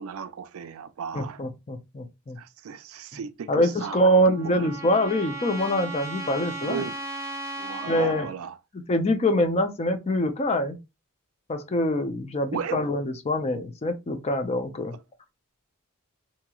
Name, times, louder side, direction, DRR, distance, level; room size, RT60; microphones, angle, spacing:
voice 1, 0.0-1.4 2.4-4.0 4.4-4.7 6.6-7.0 7.6-8.6 12.5-12.8, right 6 dB, 65° right, 0.4 m, -35 dB
voice 2, 1.1-2.4 3.5-6.8 7.9-8.3 8.9-10.8 11.5-14.9, equal, 30° left, 0.5 m, -24 dB
Trumpet, 3.8-8.3, right 2 dB, 15° right, 0.8 m, -36 dB
2.9 x 2.8 x 2.3 m
head